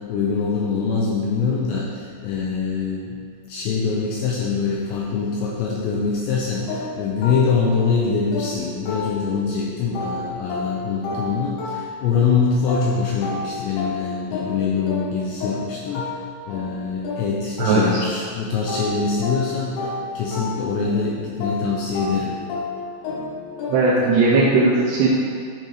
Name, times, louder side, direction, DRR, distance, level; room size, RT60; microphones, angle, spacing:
voice 1, 0.0-3.2 3.5-22.4, left 5 dB, 85° left, -3 dB, 2.5 m, -24 dB
sound 1, 6.7-9.5 9.9-18.3 18.7-24.1, left 3 dB, 70° left, 2.6 m, -31 dB
voice 2, 23.7-25.1, right 3 dB, 85° right, -5 dB, 2.5 m, -17 dB
10.5 x 3.9 x 4.8 m, 2.2 s
omnidirectional pair, 5.8 m